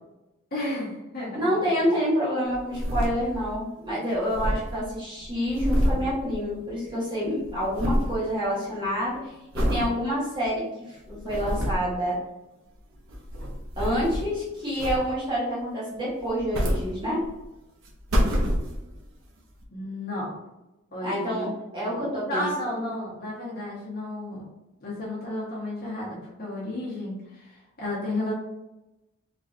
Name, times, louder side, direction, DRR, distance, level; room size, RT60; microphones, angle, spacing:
voice 1, 0.5-1.5 19.7-20.4 20.9-21.5 21.8-22.0 22.2-24.4 24.8-28.3, left 1 dB, 45° left, -7 dB, 1.5 m, -32 dB
voice 2, 1.3-12.2 13.8-17.2 21.0-21.5 21.7-23.0, equal, 20° right, -8 dB, 1.4 m, -28 dB
sound 1, 2.5-3.6 3.9-4.0 4.1-6.9 7.2-8.2 8.7-9.0 9.5-9.9 10.4-10.5 11.1-11.9 12.9-14.4 14.8-15.4 16.2-17.4 17.8-19.0 19.6-19.7, equal, 90° right, 0.8 m, -27 dB
4.0 x 3.1 x 2.6 m, 0.96 s
head